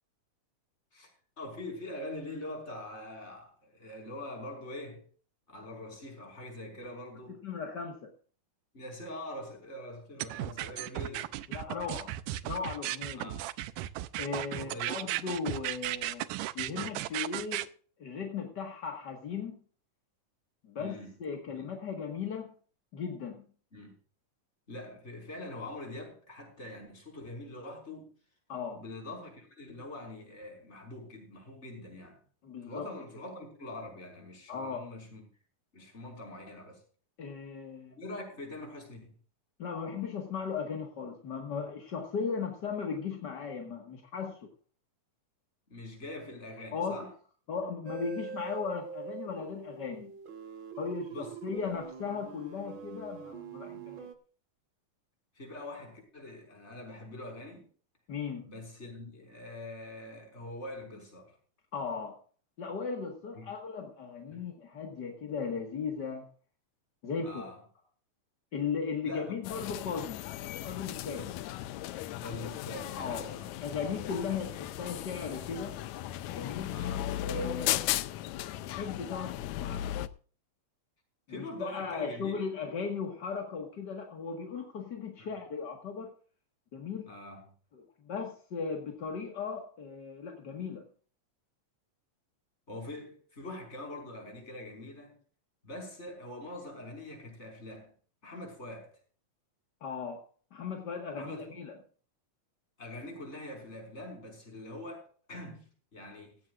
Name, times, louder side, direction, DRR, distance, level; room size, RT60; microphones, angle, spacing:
voice 1, 1.4-5.1 5.5-7.4 8.7-11.3 13.1-13.5 14.5-15.2 20.8-21.1 21.5-21.6 23.7-23.9 24.7-28.1 28.7-32.2 32.7-35.3 35.7-36.8 38.0-39.1 45.7-47.1 51.1-51.4 55.4-57.7 58.4-61.4 63.4-63.6 64.3-64.5 67.2-67.6 69.0-69.4 72.2-73.6 76.7-77.1 81.3-82.3 85.2-85.3 87.0-87.5 92.7-95.2 95.6-97.9 98.2-99.0 101.2-101.5 102.8-106.4, left 1 dB, 20° left, 1 dB, 5.7 m, -44 dB
voice 2, 7.4-8.1 11.5-12.1 12.4-13.3 14.2-16.3 16.5-17.7 18.0-19.6 20.6-22.5 22.9-23.4 28.5-28.8 32.4-32.9 34.5-34.8 37.2-38.0 39.6-44.5 46.7-47.1 47.5-50.1 50.8-54.1 58.1-58.5 61.7-62.2 62.6-66.3 67.0-67.4 68.5-70.2 70.6-71.3 73.0-73.2 73.6-75.8 76.3-76.8 77.2-77.9 78.6-79.9 81.3-86.1 86.7-87.1 87.7-90.8 99.8-100.2 100.5-101.7, left 5 dB, 40° left, 2 dB, 1.8 m, -37 dB
sound 1, 10.2-17.7, right 15 dB, 80° right, 2.2 m, -35 dB
sound 2, 47.9-54.2, right 7 dB, 50° right, 1.6 m, -44 dB
sound 3, 69.4-80.1, left 13 dB, 75° left, 1.7 m, -36 dB
16.5 x 15.0 x 2.5 m, 0.40 s
omnidirectional pair, 3.9 m